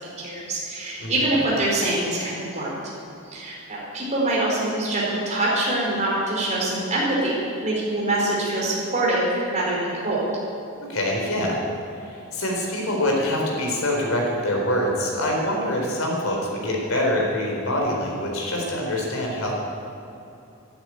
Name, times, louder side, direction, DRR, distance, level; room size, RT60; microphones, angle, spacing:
voice 1, 0.0-2.8 3.3-10.3, right 1 dB, 30° right, -5 dB, 4.8 m, -24 dB
voice 2, 10.9-11.6 12.1-19.5, left 1 dB, 65° left, -1 dB, 4.2 m, -25 dB
12.5 x 11.5 x 9.7 m, 2.8 s
head